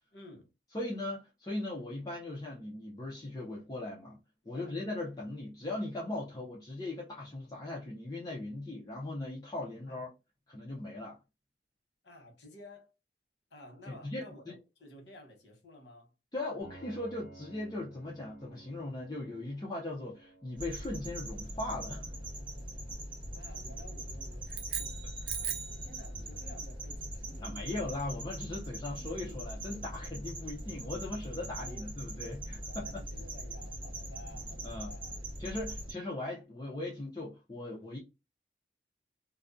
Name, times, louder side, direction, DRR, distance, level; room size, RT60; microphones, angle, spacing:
voice 1, 0.1-0.5 4.5-4.7 9.9-10.0 12.0-12.9 13.5-16.1 23.3-25.0 25.4-27.6 28.9-29.4 31.6-32.1 32.6-35.2, left 1 dB, 80° left, 1.0 m, -53 dB
voice 2, 0.7-4.2 4.5-10.1 10.5-11.2 13.9-14.5 16.3-22.1 25.3-25.4 27.4-33.0 34.6-34.9 35.4-38.0, left 2 dB, 20° left, 0.5 m, -39 dB
Piano, 16.6-26.2, right 2 dB, 50° left, 1.0 m, -58 dB
sound 1, 20.6-35.9, right 1 dB, 30° right, 1.0 m, -41 dB
sound 2, 24.5-25.9, right 8 dB, 70° right, 0.5 m, -38 dB
2.4 x 2.1 x 2.4 m
head